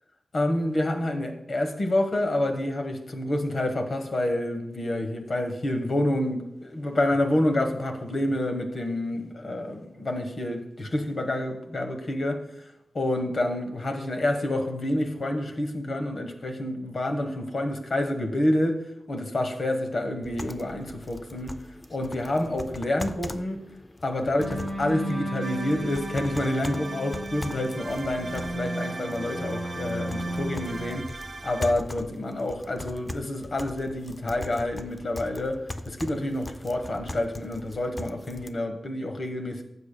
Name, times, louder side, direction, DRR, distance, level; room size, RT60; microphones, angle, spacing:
voice 1, 0.3-12.5 12.9-18.8 19.1-21.5 21.9-23.6 24.0-31.0 31.4-35.6 35.9-39.6, left 1 dB, 50° left, 5 dB, 1.1 m, -28 dB
sound 1, 20.2-38.5, left 2 dB, 20° left, 0.4 m, -41 dB
sound 2, 24.4-31.0, right 1 dB, 80° left, 3.1 m, -35 dB
sound 3, 25.4-31.7, right 3 dB, 45° right, 0.4 m, -41 dB
15.0 x 7.0 x 2.2 m, 0.85 s
wide cardioid pair, 140°, 0 cm